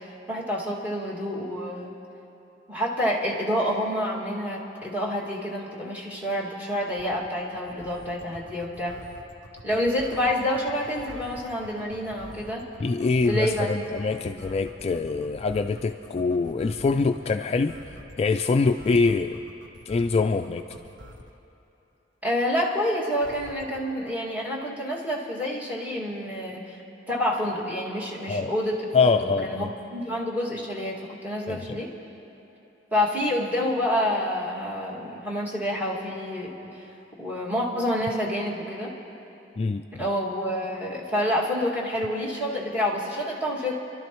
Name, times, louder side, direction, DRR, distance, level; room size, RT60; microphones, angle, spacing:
voice 1, 0.0-1.9 2.7-9.0 9.6-12.7 13.3-13.7 14.1-14.2 22.2-26.8 27.1-28.9 29.4-31.9 32.9-36.7 37.2-38.9 39.9-43.7, left 1 dB, 10° right, -5 dB, 2.0 m, -28 dB
sound 1, 7.0-21.4 23.2-23.8, equal, 75° right, 1.3 m, -46 dB
voice 2, 12.8-17.7 18.2-19.4 19.9-20.6 28.3-28.5 28.9-29.7 31.5-31.8 39.6-39.8, left 4 dB, 35° left, 6 dB, 0.3 m, -24 dB
30.0 x 12.0 x 3.0 m, 2.9 s
head